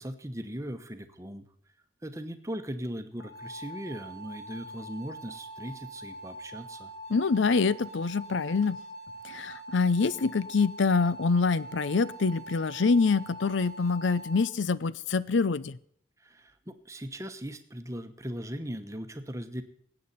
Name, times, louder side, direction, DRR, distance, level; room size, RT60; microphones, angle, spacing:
voice 1, 0.0-1.4 2.0-6.9 16.2-19.6, equal, 15° right, 9 dB, 1.0 m, -39 dB
sound 1, 3.2-14.4, right 2 dB, 55° left, 1.7 m, -44 dB
voice 2, 7.1-8.8 9.2-15.8, left 4 dB, 80° left, 19 dB, 0.6 m, -25 dB
19.0 x 8.6 x 4.2 m, 0.66 s
head